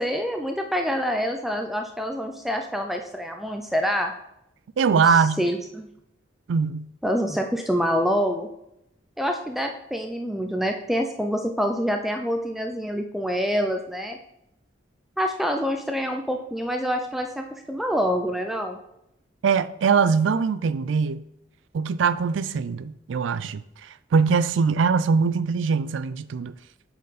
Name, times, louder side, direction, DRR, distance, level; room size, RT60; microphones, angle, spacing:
voice 1, 0.0-4.1 4.9-5.9 7.0-8.5 9.2-14.2 15.2-18.8, equal, ahead, 0.4 m, -26 dB
voice 2, 4.8-5.4 6.5-6.9 19.4-21.2 21.7-23.6 24.1-26.5, right 5 dB, 80° right, 0.4 m, -22 dB
8.2 x 4.5 x 4.0 m
head